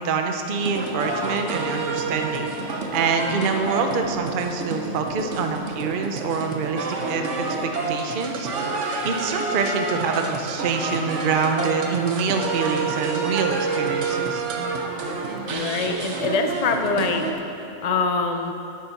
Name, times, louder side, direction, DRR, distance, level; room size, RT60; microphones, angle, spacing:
voice 1, 0.0-8.7 9.0-14.4, right 5 dB, 50° right, 4 dB, 0.8 m, -26 dB
sound 1, 0.6-17.3, right 3 dB, 70° right, 1.3 m, -28 dB
voice 2, 15.4-17.3 17.8-18.5, left 4 dB, 45° left, 5 dB, 0.5 m, -24 dB
9.6 x 8.6 x 5.8 m, 2.8 s
omnidirectional pair, 1.3 m